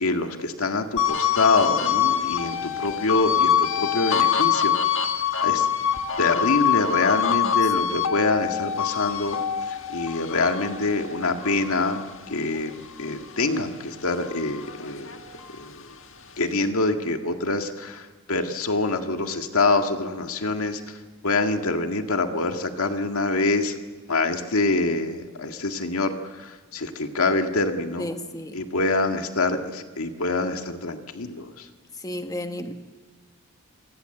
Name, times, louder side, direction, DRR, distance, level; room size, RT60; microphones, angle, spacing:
voice 1, 0.0-4.8 5.4-5.7 6.2-9.4 9.7-12.0 12.3-12.7 13.0-15.2 15.6-15.9 16.4-21.0 21.2-23.8 24.1-28.1 28.5-31.7, left 3 dB, 90° left, 6 dB, 1.9 m, -25 dB
sound 1, 1.0-13.6 14.0-15.7, left 9 dB, 65° left, 1.7 m, -25 dB
voice 2, 28.0-28.6 32.0-32.7, left 1 dB, 15° left, 7 dB, 1.3 m, -33 dB
27.5 x 20.0 x 7.9 m, 1.3 s
head